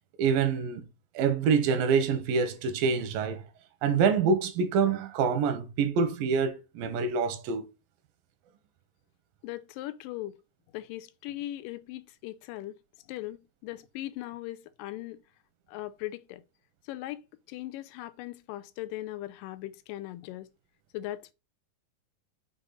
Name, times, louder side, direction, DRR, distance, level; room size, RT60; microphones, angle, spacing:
voice 1, 0.2-0.9 1.2-3.4 3.8-7.6, right 5 dB, 85° right, 2.7 m, -26 dB
voice 2, 9.4-10.4 10.7-12.8 13.1-15.2 15.7-16.4 16.9-17.2 17.5-20.5 20.9-21.3, left 15 dB, 85° left, 2.2 m, -39 dB
7.1 x 4.0 x 4.0 m
omnidirectional pair, 3.9 m